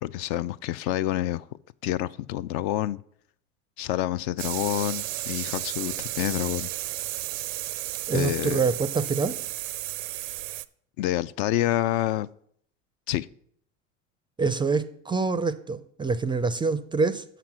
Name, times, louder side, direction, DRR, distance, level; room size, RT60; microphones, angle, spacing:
voice 1, 0.0-1.4 1.8-3.0 3.8-6.7 8.1-8.7 11.0-12.3 13.1-13.3, left 14 dB, 55° left, 0.4 m, -28 dB
sound 1, 4.4-10.7, right 16 dB, 85° right, 0.5 m, -33 dB
voice 2, 8.1-9.4 14.4-17.2, right 4 dB, 15° right, 0.4 m, -26 dB
6.7 x 5.9 x 6.0 m
hypercardioid pair, 90°, 37 cm